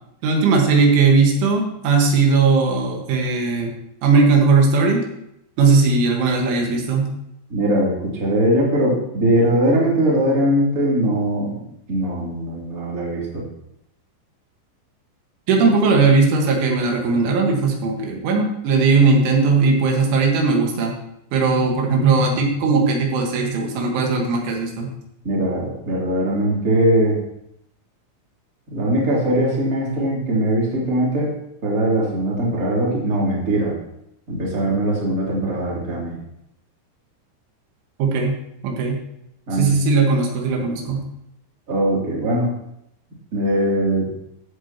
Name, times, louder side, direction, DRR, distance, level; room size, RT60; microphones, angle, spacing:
voice 1, 0.2-3.7 4.0-5.1 5.6-7.1 15.5-21.0 21.3-24.9 38.0-38.4 38.6-39.0 39.5-41.0, right 4 dB, 85° right, 1 dB, 4.1 m, -18 dB
voice 2, 7.5-11.6 11.9-13.4 25.2-27.2 28.7-31.3 31.6-33.7 34.3-36.2 39.5-39.7 41.7-42.5 43.3-44.1, right 1 dB, 25° right, -5 dB, 2.6 m, -20 dB
14.5 x 8.3 x 3.0 m, 0.78 s
omnidirectional pair, 5.4 m